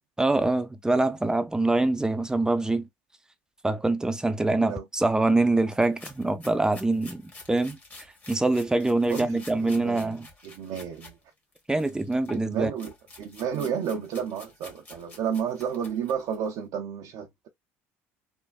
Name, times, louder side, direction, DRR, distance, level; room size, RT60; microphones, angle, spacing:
voice 1, 0.2-2.9 3.6-7.8 8.3-10.3 11.7-12.7, right 2 dB, 10° right, 0.5 m, -24 dB
sound 1, 5.7-11.1 11.5-16.5, left 2 dB, 25° left, 1.5 m, -49 dB
voice 2, 9.1-11.2 12.3-17.5, right 7 dB, 65° right, 0.5 m, -32 dB
3.3 x 2.1 x 2.4 m
hypercardioid pair, 70°, 7 cm